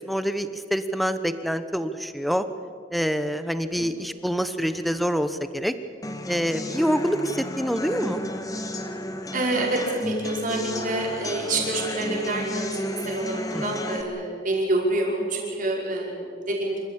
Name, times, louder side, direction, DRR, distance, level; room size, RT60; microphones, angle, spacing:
voice 1, 0.0-2.4 2.9-5.7 6.3-8.2 13.5-14.0, equal, ahead, 10 dB, 1.0 m, -26 dB
voice 2, 3.8-4.1 9.3-16.8, right 2 dB, 50° right, -2 dB, 5.4 m, -27 dB
sound 1, 6.0-14.0, left 1 dB, 20° left, 1.5 m, -32 dB
27.5 x 14.5 x 8.7 m, 2.1 s
head